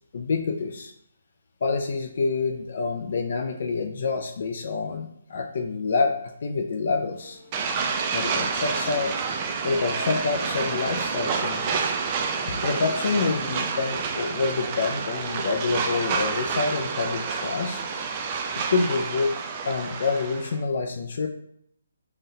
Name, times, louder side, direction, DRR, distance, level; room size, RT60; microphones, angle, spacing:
voice 1, 0.1-0.9 1.6-7.4 8.1-9.1 9.6-11.9 12.5-17.8 18.7-19.3 19.6-21.3, left 4 dB, 55° left, 6 dB, 0.3 m, -27 dB
sound 1, 7.1-13.3, left 2 dB, 15° left, 1.0 m, -51 dB
sound 2, 7.5-20.6, right 5 dB, 30° right, 0.3 m, -29 dB
3.8 x 2.2 x 2.7 m, 0.70 s
figure-of-eight pair, 145°, 0 cm